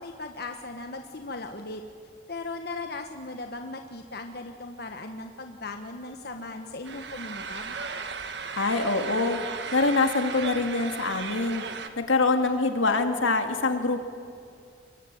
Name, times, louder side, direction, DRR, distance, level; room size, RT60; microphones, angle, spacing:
voice 1, 0.0-1.8 2.3-7.8, left 2 dB, 55° left, 5 dB, 1.3 m, -38 dB
sound 1, 6.9-11.9, right 5 dB, 60° right, 1.7 m, -36 dB
voice 2, 8.6-9.4 9.7-11.6 12.0-14.0, left 3 dB, 85° left, 5 dB, 2.6 m, -24 dB
23.0 x 22.5 x 9.3 m, 2.5 s
head